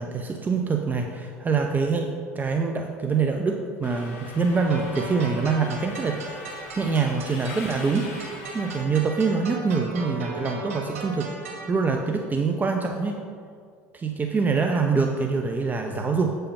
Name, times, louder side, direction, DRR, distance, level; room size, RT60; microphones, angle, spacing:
voice 1, 0.0-8.1 8.5-11.3 11.7-13.2 13.9-16.4, right 4 dB, 25° right, 3 dB, 0.7 m, -25 dB
Subway metro underground, 3.8-8.8, left 3 dB, 75° left, 1.4 m, -41 dB
sound 1, 4.7-11.7, right 2 dB, 85° right, 1.9 m, -38 dB
8.4 x 5.6 x 5.3 m, 2.2 s
hypercardioid pair, 85°, 7 cm